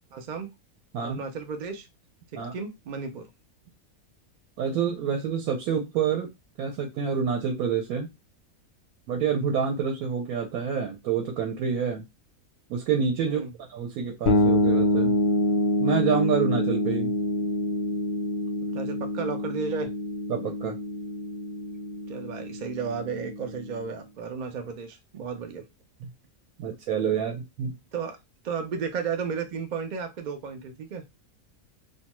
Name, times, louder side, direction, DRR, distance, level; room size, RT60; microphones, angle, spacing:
voice 1, 0.1-0.5 1.0-1.9 2.5-3.3 13.2-13.5 18.7-19.9 22.1-25.6 27.9-28.2 28.4-31.0, right 5 dB, 70° right, 5 dB, 0.4 m, -33 dB
voice 2, 4.6-6.3 6.6-8.1 9.1-12.0 12.7-13.4 13.7-15.1 15.8-17.1 20.3-20.8 26.0-26.1 26.6-27.7, right 7 dB, 90° right, 2 dB, 1.1 m, -27 dB
sound 1, 14.3-23.9, left 1 dB, 60° left, 0.7 m, -26 dB
2.6 x 2.2 x 2.9 m, 0.22 s
omnidirectional pair, 1.5 m